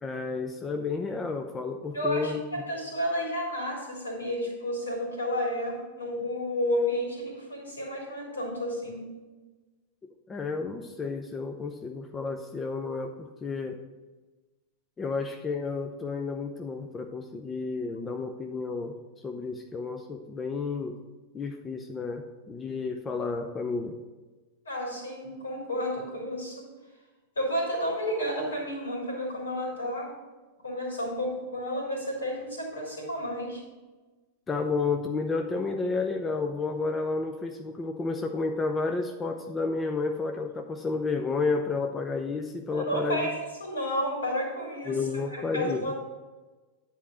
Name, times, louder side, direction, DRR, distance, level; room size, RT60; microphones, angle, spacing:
voice 1, 0.0-2.4 10.3-13.8 15.0-18.9 19.2-21.0 21.3-24.0 34.5-43.3 44.9-45.9, left 4 dB, 20° left, 5 dB, 0.6 m, -31 dB
voice 2, 1.9-9.0 24.6-26.7 27.3-30.1 30.6-33.6 42.7-43.3 43.6-45.9, equal, 75° left, -1 dB, 3.4 m, -31 dB
10.0 x 4.3 x 6.3 m, 1.2 s
figure-of-eight pair, 90°, 0 cm